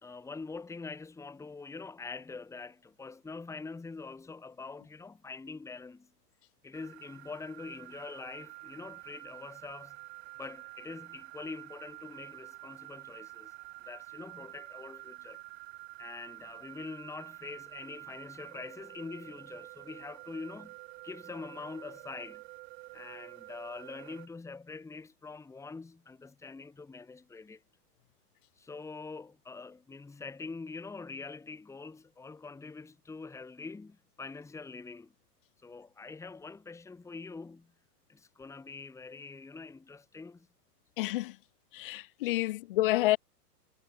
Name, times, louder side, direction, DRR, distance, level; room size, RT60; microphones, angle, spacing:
voice 1, 0.0-6.1 6.6-10.0 10.4-13.5 13.8-15.4 16.0-20.8 21.0-22.4 22.9-27.6 28.6-35.1 35.6-37.7 38.1-40.5 42.4-42.5, left 4 dB, 5° left, 1.7 m, -44 dB
sound 1, 6.7-24.3, right 30 dB, 45° right, 4.0 m, -49 dB
voice 2, 41.0-41.3 41.7-43.2, left 17 dB, 35° left, 0.4 m, -29 dB
hypercardioid pair, 135°, 48 cm